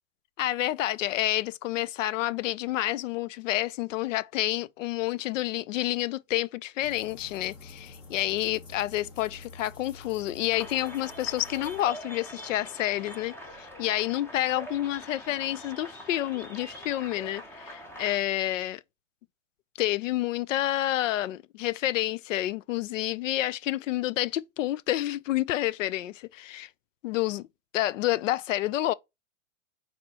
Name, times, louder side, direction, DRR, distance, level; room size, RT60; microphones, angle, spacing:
voice 1, 0.4-18.8 19.8-26.7 27.0-27.5 27.7-28.9, left 15 dB, 70° left, 0.5 m, -29 dB
sound 1, 6.8-11.8, left 3 dB, 40° left, 2.1 m, -48 dB
sound 2, 10.5-18.2, equal, 5° left, 0.6 m, -44 dB
4.3 x 4.3 x 2.8 m
hypercardioid pair, 145°, 39 cm